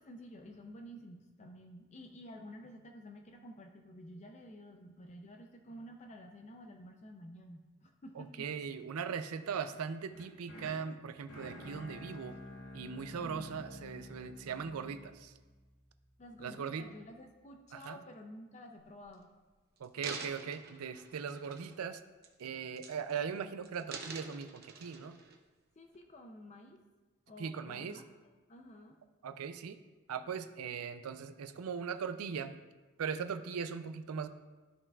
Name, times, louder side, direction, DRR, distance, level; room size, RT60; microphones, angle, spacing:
voice 1, 0.0-8.5 13.2-13.6 16.2-19.3 25.8-26.8 27.3-29.0, equal, 30° left, 4 dB, 0.5 m, -51 dB
voice 2, 8.2-12.4 12.7-15.3 16.4-16.9 17.7-18.0 19.8-22.0 22.4-25.2 27.4-28.0 29.2-29.8 30.1-32.6 33.0-34.3, right 6 dB, 85° right, 10 dB, 0.4 m, -39 dB
sound 1, 10.1-16.2, left 1 dB, 75° left, 1.7 m, -50 dB
sound 2, 18.8-19.1 19.8-21.9 22.2-22.5 22.8-23.3 23.6-25.4 25.9-26.0, right 5 dB, 45° right, 0.8 m, -47 dB
13.0 x 5.5 x 2.3 m, 1.3 s
head